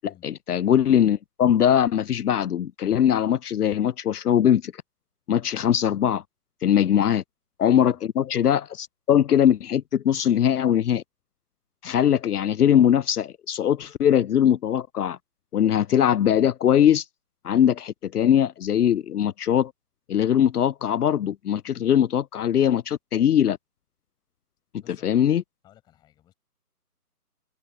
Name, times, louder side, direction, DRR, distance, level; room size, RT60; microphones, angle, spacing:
voice 1, 0.2-4.7 5.3-6.2 6.6-7.2 7.6-11.0 11.8-15.2 15.5-17.0 17.4-19.7 20.1-23.6 25.0-25.4, left 9 dB, 75° left, 0.5 m, -21 dB
voice 2, 24.8-25.2 25.6-26.3, left 12 dB, 10° left, 6.9 m, -55 dB
figure-of-eight pair, 165°, 47 cm